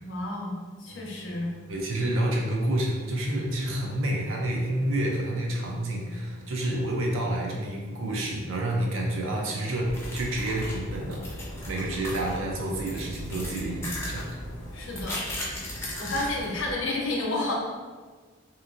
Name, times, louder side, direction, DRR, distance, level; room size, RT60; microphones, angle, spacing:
voice 1, 0.0-0.5 0.8-1.5 14.7-15.2 16.0-17.5, left 2 dB, 70° left, -1 dB, 0.6 m, -30 dB
sound 1, 0.9-14.8, left 1 dB, 35° right, 0.7 m, -50 dB
voice 2, 1.7-14.3, right 1 dB, 75° right, -1 dB, 0.6 m, -29 dB
sound 2, 9.9-16.7, left 1 dB, 10° left, 0.4 m, -36 dB
2.9 x 2.5 x 2.5 m, 1.4 s
head